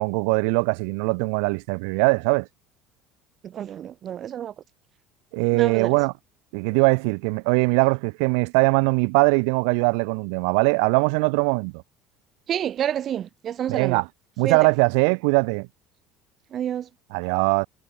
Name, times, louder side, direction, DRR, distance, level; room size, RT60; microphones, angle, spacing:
voice 1, 0.0-2.5 5.3-6.1 6.5-11.8 13.7-14.0 14.4-15.7 17.1-17.7, right 38 dB, 85° right, 2.0 m, -21 dB
voice 2, 3.4-4.5 5.5-6.0 12.5-14.0 14.4-14.7 16.5-16.9, right 10 dB, 35° right, 2.3 m, -28 dB
cardioid pair, 150°, 0 cm